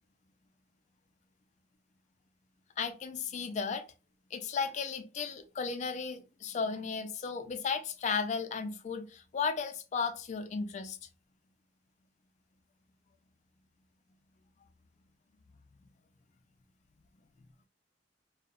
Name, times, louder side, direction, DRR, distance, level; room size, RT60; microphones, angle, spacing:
voice 1, 2.8-3.8 4.3-11.0, left 5 dB, 40° left, 0.3 m, -35 dB
2.6 x 2.0 x 2.4 m
head